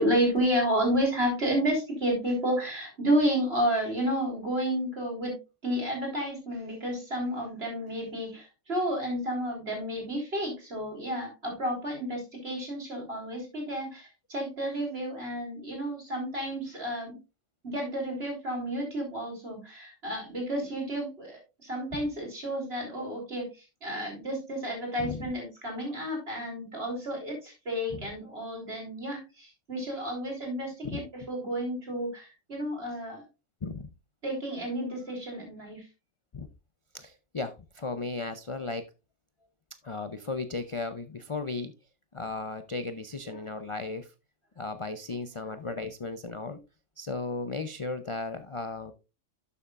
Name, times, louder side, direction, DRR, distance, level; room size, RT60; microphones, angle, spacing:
voice 1, 0.0-17.2 17.6-23.5 23.8-33.2 34.2-35.9 43.3-43.4, equal, 50° right, 1 dB, 3.9 m, -31 dB
voice 2, 36.9-38.9 39.8-41.7 42.1-44.1 44.6-46.6 47.0-48.9, left 3 dB, 35° left, 9 dB, 0.5 m, -35 dB
12.0 x 7.1 x 2.4 m, 0.27 s
omnidirectional pair, 1.3 m